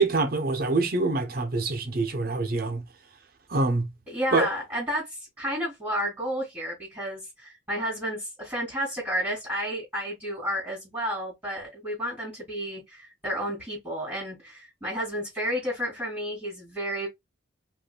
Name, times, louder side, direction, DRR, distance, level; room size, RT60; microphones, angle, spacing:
voice 1, 0.0-2.8 3.5-3.9 4.3-4.5, right 3 dB, 50° right, 0.8 m, -25 dB
voice 2, 4.1-17.1, equal, 10° right, 2.8 m, -31 dB
5.3 x 2.6 x 2.3 m
head